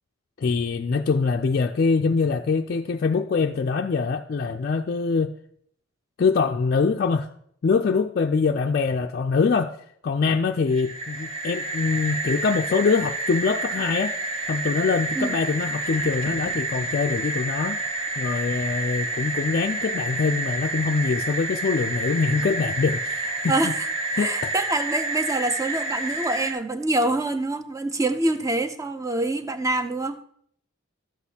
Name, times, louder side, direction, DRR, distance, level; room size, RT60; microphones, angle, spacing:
voice 1, 0.4-5.3 6.2-7.3 7.6-9.8 10.0-14.2 14.5-17.8 18.2-23.7 24.2-24.5, left 4 dB, 45° left, 3 dB, 0.3 m, -24 dB
sound 1, 10.7-26.5, right 2 dB, 55° right, 1.6 m, -29 dB
voice 2, 24.2-30.2, right 2 dB, 15° right, 9 dB, 0.5 m, -25 dB
12.0 x 8.0 x 2.8 m, 0.65 s
head